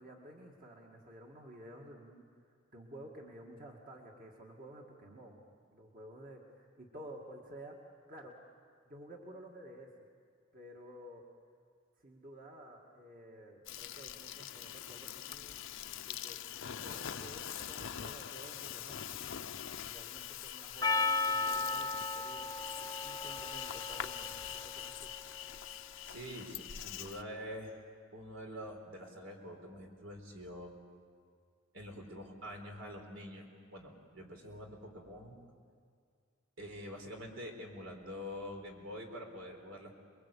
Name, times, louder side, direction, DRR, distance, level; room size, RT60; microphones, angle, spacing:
voice 1, 0.0-8.3 8.9-10.1 10.5-11.2 12.0-15.6 16.0-16.4 16.8-19.0 19.8-22.5 23.0-25.1, right 1 dB, 45° right, 0 dB, 2.2 m, -52 dB
Insect, 13.7-27.2, left 10 dB, 65° left, 0.7 m, -43 dB
Percussion, 20.8-25.4, left 3 dB, 20° left, 0.7 m, -36 dB
voice 2, 26.0-27.8 28.1-30.8 31.7-35.4 36.6-39.9, equal, 85° right, 2 dB, 4.2 m, -46 dB
27.5 x 22.0 x 8.5 m, 2.1 s
head